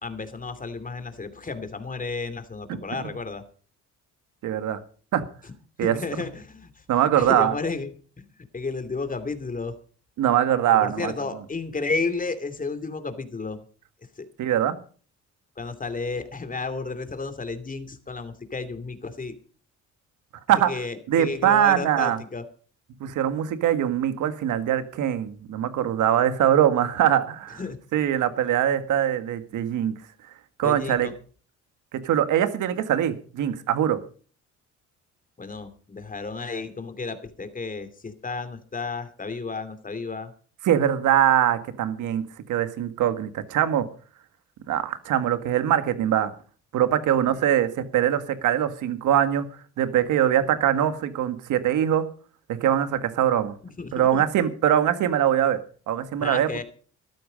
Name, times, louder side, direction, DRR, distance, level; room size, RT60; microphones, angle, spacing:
voice 1, 0.0-3.4 5.8-6.7 7.2-7.9 8.2-9.8 10.7-13.6 14.2-14.3 15.6-19.3 20.5-22.4 27.6-27.8 30.6-31.1 35.4-40.3 47.3-47.4 53.8-54.2 56.2-56.6, left 4 dB, 25° left, 10 dB, 2.7 m, -32 dB
voice 2, 4.4-4.8 5.1-5.2 5.8-6.0 6.9-7.5 10.2-11.1 14.4-14.8 20.5-20.7 21.1-22.2 23.0-27.6 27.9-29.9 30.6-31.1 32.0-34.0 40.6-43.8 44.7-46.3 46.7-49.5 49.8-52.0 52.5-53.5 53.9-55.6 55.9-56.5, right 10 dB, 80° right, 11 dB, 1.8 m, -22 dB
14.0 x 13.0 x 5.2 m, 0.41 s
cardioid pair, 90°, 30 cm